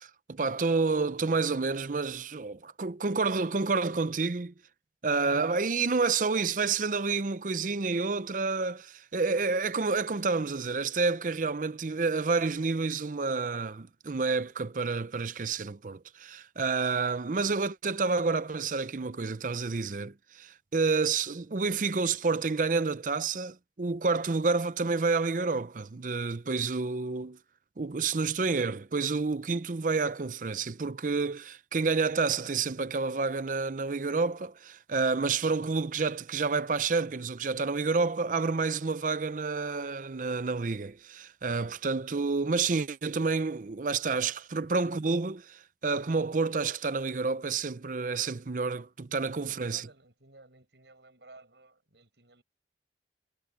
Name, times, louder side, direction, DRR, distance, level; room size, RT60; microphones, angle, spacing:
voice 1, 0.0-4.5 5.0-27.4 27.8-49.8, right 4 dB, 45° right, 0.6 m, -29 dB
voice 2, 49.3-52.4, right 2 dB, 80° right, 6.6 m, -55 dB
head